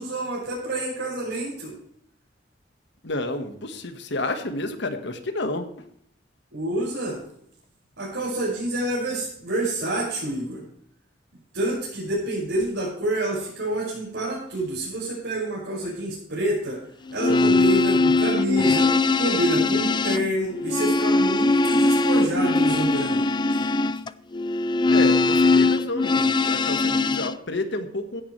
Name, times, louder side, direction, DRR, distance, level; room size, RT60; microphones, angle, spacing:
voice 1, 0.0-1.7 6.5-7.2 8.0-10.6 11.5-16.8 17.1-18.9 19.2-23.2, right 1 dB, 75° right, -8 dB, 5.8 m, -27 dB
voice 2, 3.0-5.7 24.9-28.2, left 2 dB, 65° left, 8 dB, 1.5 m, -30 dB
sound 1, 17.1-27.3, left 3 dB, 25° left, 0.4 m, -21 dB
15.5 x 11.0 x 3.3 m, 0.67 s
head